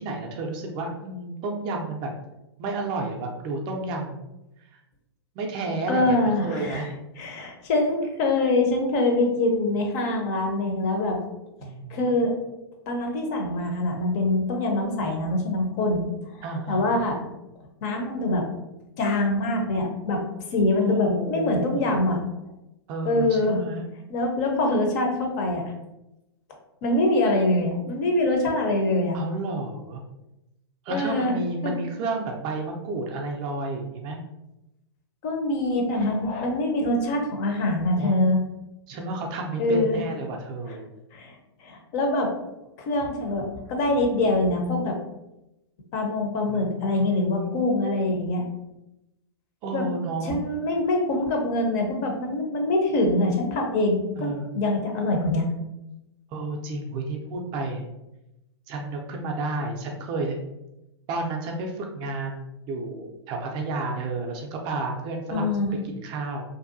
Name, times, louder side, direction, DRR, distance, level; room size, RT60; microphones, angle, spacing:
voice 1, 0.0-2.1 2.6-4.3 5.4-6.9 11.6-12.2 16.4-16.9 20.8-22.0 22.9-23.8 29.1-30.0 30.8-34.2 38.0-38.3 38.9-40.9 46.5-47.6 49.6-50.4 54.2-54.5 56.3-57.9 58.7-60.4 61.1-66.4, right 2 dB, 30° right, 1 dB, 0.4 m, -31 dB
voice 2, 5.9-6.9 7.2-11.2 11.9-12.3 12.9-16.1 16.7-17.3 17.8-18.5 19.0-20.2 20.5-22.2 23.0-23.6 24.1-25.6 26.8-29.2 30.9-31.4 31.6-31.7 35.2-38.4 39.6-40.0 41.1-41.4 41.6-42.3 42.8-45.0 45.9-48.5 49.7-49.8 50.2-55.5 65.3-65.8, left 2 dB, 40° left, 2 dB, 0.6 m, -24 dB
2.6 x 2.3 x 2.5 m, 0.92 s
figure-of-eight pair, 110°, 14 cm